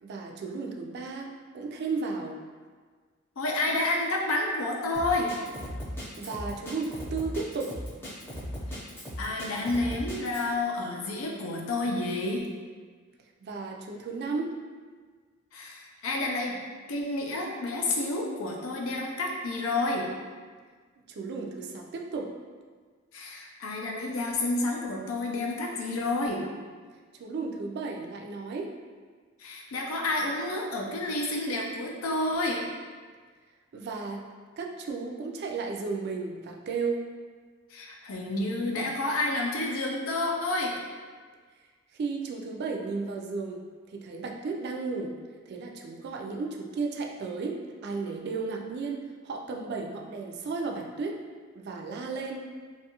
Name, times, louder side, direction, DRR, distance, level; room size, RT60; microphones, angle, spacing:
voice 1, 0.0-2.4 6.2-7.7 13.4-14.5 21.1-22.3 27.2-28.7 33.7-34.3 34.6-37.0 41.9-43.6 43.9-45.1 45.5-51.2 51.5-52.5, right 4 dB, 55° right, 1 dB, 0.3 m, -34 dB
voice 2, 3.4-5.3 8.7-8.8 9.2-12.5 15.5-16.6 16.9-20.1 23.1-26.5 29.4-32.6 37.7-40.8, left 2 dB, 85° left, 0 dB, 0.5 m, -30 dB
Drum kit, 4.9-10.5, equal, 10° left, 0.5 m, -37 dB
2.6 x 2.3 x 2.8 m, 1.5 s
head